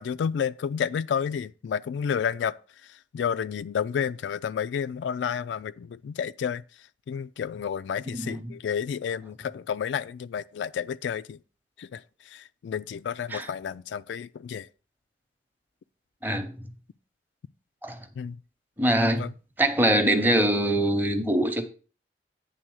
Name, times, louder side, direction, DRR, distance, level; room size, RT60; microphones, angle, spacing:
voice 1, 0.0-2.6 3.1-6.6 7.1-11.4 11.8-12.0 12.3-14.7 18.2-18.4 19.2-19.3, left 7 dB, 85° left, 0.3 m, -30 dB
voice 2, 16.2-16.5 17.8-18.0 18.8-19.3 19.6-21.7, right 1 dB, 10° right, 0.8 m, -23 dB
8.9 x 3.7 x 6.2 m
head